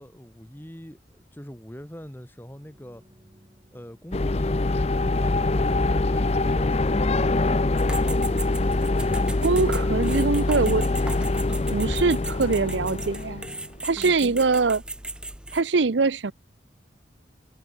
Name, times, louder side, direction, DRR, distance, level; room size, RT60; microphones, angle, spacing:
voice 1, 0.0-3.0 3.7-7.3 14.0-14.4, equal, 10° left, 1.6 m, -43 dB
sound 1, 2.3-12.8 13.4-13.5, right 1 dB, 20° right, 5.4 m, -61 dB
sound 2, 4.1-13.8, left 2 dB, 35° left, 0.6 m, -24 dB
sound 3, 7.8-15.6, right 2 dB, 5° right, 0.5 m, -37 dB
voice 2, 9.4-10.8 11.7-13.4 13.8-14.8 15.5-16.3, right 4 dB, 75° right, 0.7 m, -23 dB
head